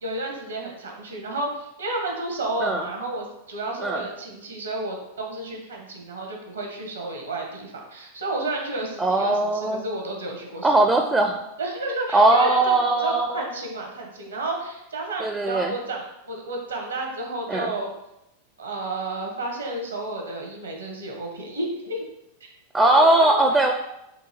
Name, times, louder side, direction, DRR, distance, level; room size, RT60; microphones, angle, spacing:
voice 1, 0.0-11.0 11.6-17.9 18.6-22.0 22.8-23.4, right 2 dB, 75° right, 1 dB, 1.0 m, -31 dB
voice 2, 9.0-9.8 10.6-11.4 12.1-13.4 15.2-15.7 17.5-17.7 22.7-23.7, right 2 dB, 10° right, 4 dB, 0.4 m, -19 dB
4.4 x 2.8 x 4.2 m, 0.87 s
figure-of-eight pair, 90°, 0 cm